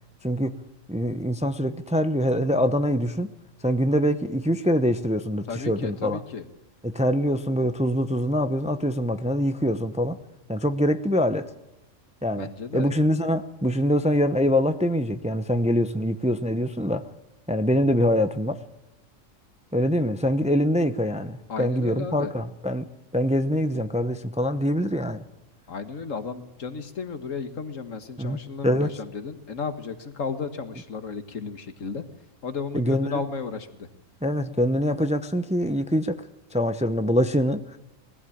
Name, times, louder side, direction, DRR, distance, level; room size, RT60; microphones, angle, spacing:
voice 1, 0.2-0.6 0.9-3.3 3.6-6.2 6.8-10.2 10.5-11.5 12.2-12.5 12.7-17.1 17.5-18.6 19.7-22.9 23.1-25.2 28.2-28.4 28.6-28.9 32.7-33.2 34.2-36.2 36.5-37.8, equal, 5° right, 9 dB, 0.7 m, -24 dB
voice 2, 5.5-6.4 12.4-12.9 21.5-22.3 25.7-32.0 32.4-33.9, left 5 dB, 75° left, 8 dB, 1.9 m, -33 dB
20.5 x 15.5 x 8.6 m, 0.99 s
omnidirectional pair, 1.3 m